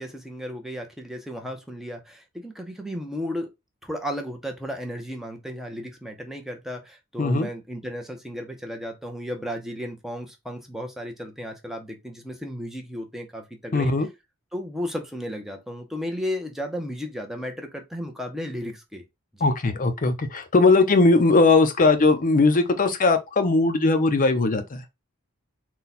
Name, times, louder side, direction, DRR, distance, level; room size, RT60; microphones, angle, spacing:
voice 1, 0.0-3.5 3.8-13.9 14.5-19.0 19.3-19.5, equal, ahead, 0.7 m, -34 dB
voice 2, 13.7-14.1 19.4-24.8, left 3 dB, 40° left, 0.5 m, -19 dB
4.0 x 2.2 x 4.0 m
head